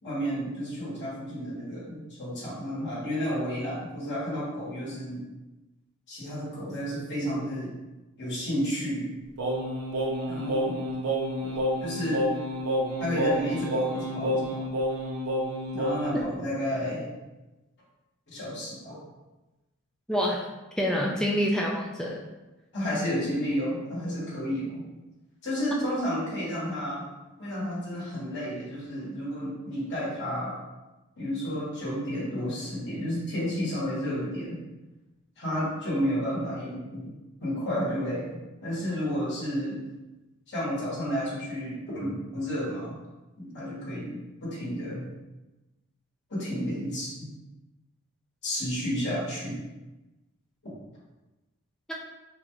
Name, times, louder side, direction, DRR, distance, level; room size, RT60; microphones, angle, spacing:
voice 1, 0.0-5.2 6.1-7.7 8.2-9.1 10.3-10.8 11.4-12.3 13.0-14.6 15.7-17.1 18.3-19.0 22.7-24.8 25.4-27.1 27.4-30.6 31.2-34.6 35.4-37.1 37.4-39.8 40.5-43.0 43.4-45.1 46.3-47.3 48.4-49.6, equal, 55° left, -8 dB, 1.3 m, -31 dB
Singing, 9.4-16.2, equal, 85° right, 0.6 m, -29 dB
voice 2, 20.1-20.4 20.8-22.2 51.9-52.0, equal, 5° left, -3 dB, 0.3 m, -27 dB
3.9 x 2.3 x 3.0 m, 1.1 s
head